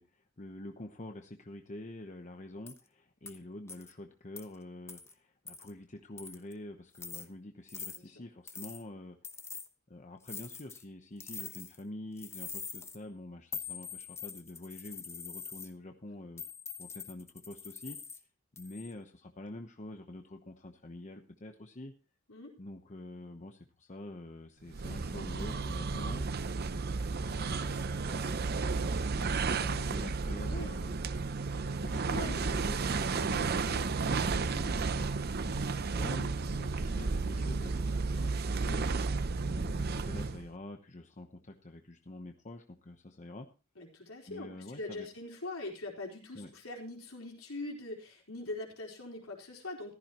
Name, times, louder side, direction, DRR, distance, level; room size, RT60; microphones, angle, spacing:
voice 1, 0.0-9.2 9.9-16.4 16.8-18.0 18.6-21.9 22.6-26.2 27.2-31.0 31.8-38.9 39.4-43.5 44.3-45.1 46.3-46.5, left 1 dB, 35° left, 5 dB, 1.0 m, -47 dB
sound 1, 2.7-2.8 3.3-3.4 3.7-3.9 4.4-4.5 4.9-5.1 5.5-5.7 6.2-6.5 6.9-7.3 7.7-8.0 8.5-8.8 9.2-9.7 10.2-10.8 11.2-11.8 12.2-13.0 13.5-15.7 16.4-18.2 18.6-18.9, left 6 dB, 10° left, 0.9 m, -44 dB
sound 2, 24.7-40.5, right 4 dB, 50° right, 0.6 m, -33 dB
voice 2, 30.4-30.8 32.1-32.4 36.7-37.1 43.8-49.9, left 2 dB, 70° left, 0 dB, 4.3 m, -42 dB
15.0 x 14.0 x 3.0 m, 0.32 s
head